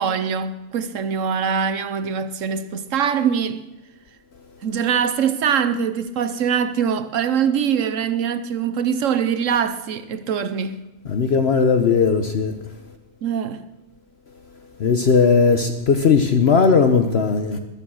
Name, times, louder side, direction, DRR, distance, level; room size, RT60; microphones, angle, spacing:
voice 1, 0.0-3.6 4.6-10.8 13.2-13.6, right 7 dB, 80° right, 1.1 m, -23 dB
voice 2, 11.1-12.5 14.8-17.6, left 5 dB, 55° left, 1.1 m, -17 dB
21.0 x 7.1 x 6.3 m
omnidirectional pair, 1.3 m